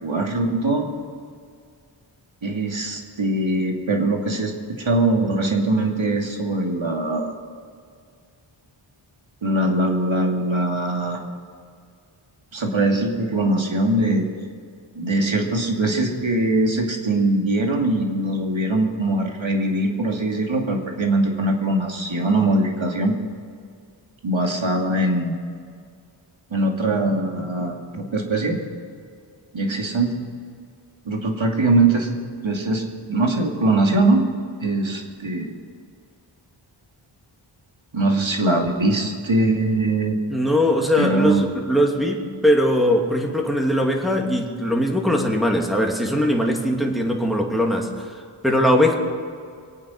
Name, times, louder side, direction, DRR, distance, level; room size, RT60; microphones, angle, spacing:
voice 1, 0.0-0.9 2.4-7.3 9.4-11.2 12.5-14.3 15.0-23.1 24.2-25.3 26.5-28.6 29.5-30.1 31.0-32.1 32.4-34.2 34.6-35.5 37.9-40.2 41.0-41.4, right 2 dB, 65° right, 1 dB, 2.6 m, -22 dB
voice 2, 40.3-48.9, equal, ahead, 0 dB, 2.7 m, -20 dB
23.5 x 8.9 x 6.4 m, 2.2 s
cardioid pair, 45°, 50 cm